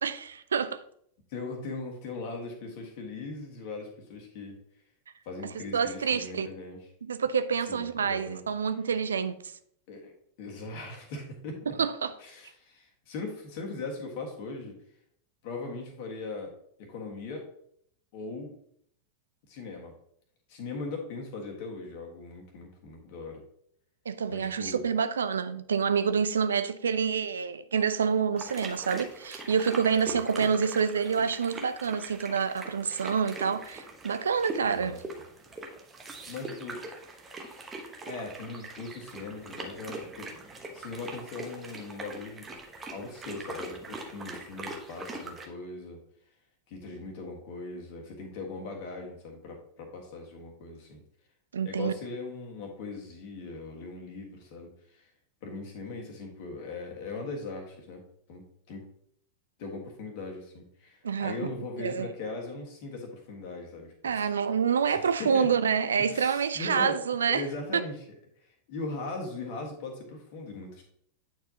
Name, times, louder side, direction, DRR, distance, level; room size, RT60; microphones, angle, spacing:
voice 1, 0.0-0.8 5.7-6.5 7.0-9.5 11.8-12.1 24.1-35.0 51.5-51.9 61.0-61.4 61.8-62.1 64.0-67.4, right 6 dB, 70° right, 0.3 m, -27 dB
voice 2, 1.3-4.6 5.2-6.8 7.7-8.4 9.9-10.1 10.4-11.7 12.2-14.8 15.4-16.5 16.8-17.5 18.1-18.5 19.5-19.9 20.5-23.4 24.3-24.8 30.0-30.5 34.6-35.0 36.3-36.9 38.0-40.3 40.7-42.5 42.9-46.0 46.7-51.0 51.6-55.1 55.4-58.9 59.6-64.3 64.9-65.5 66.0-67.0 67.3-68.0 68.4-70.8, left 3 dB, 45° left, 1.5 m, -39 dB
sound 1, 28.4-45.5, right 2 dB, 20° right, 1.0 m, -42 dB
8.5 x 4.6 x 2.8 m
figure-of-eight pair, 90°, 0 cm